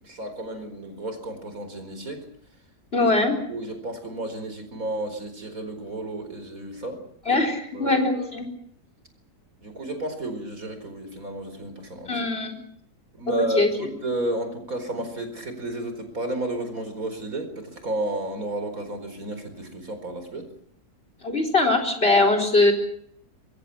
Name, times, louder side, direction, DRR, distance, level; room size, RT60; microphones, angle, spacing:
voice 1, 0.0-2.2 3.0-3.1 3.5-7.4 7.7-8.3 9.6-12.3 13.1-20.5, right 1 dB, 60° right, 8 dB, 5.0 m, -32 dB
voice 2, 2.9-3.3 7.3-8.5 12.1-12.5 13.3-13.7 21.2-22.7, left 2 dB, 35° left, 7 dB, 4.6 m, -21 dB
26.5 x 23.5 x 5.9 m, 0.67 s
omnidirectional pair, 1.7 m